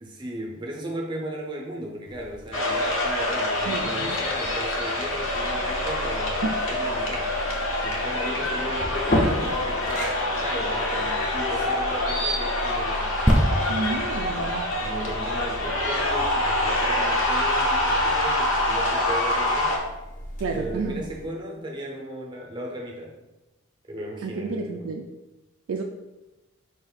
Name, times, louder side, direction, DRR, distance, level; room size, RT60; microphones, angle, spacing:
voice 1, 0.0-7.4 7.8-13.1 14.8-19.7 20.5-23.2 23.9-24.7, right 1 dB, 20° right, -1 dB, 0.7 m, -36 dB
sound 1, 2.1-21.3, left 1 dB, 35° left, 0.6 m, -35 dB
sound 2, 2.5-19.8, left 1 dB, 75° left, 0.9 m, -26 dB
voice 2, 3.7-4.2 6.4-6.7 13.7-14.7 20.4-21.0 24.2-25.0 25.7-25.8, right 3 dB, 80° right, 2 dB, 0.3 m, -30 dB
sound 3, 13.3-16.9 17.5-17.6, equal, 5° right, 0.3 m, -26 dB
5.0 x 2.5 x 3.9 m, 1.0 s
head